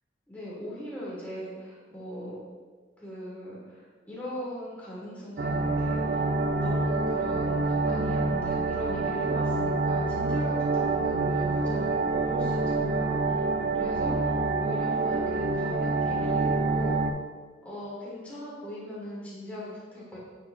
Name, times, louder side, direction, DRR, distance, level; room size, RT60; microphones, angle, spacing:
voice 1, 0.3-2.4 3.0-6.3 6.6-13.4 13.7-17.0 17.6-20.2, equal, 10° left, -7 dB, 1.8 m, -40 dB
sound 1, 5.4-17.1, right 3 dB, 55° right, 0.4 m, -27 dB
9.4 x 4.3 x 2.5 m, 1.5 s
head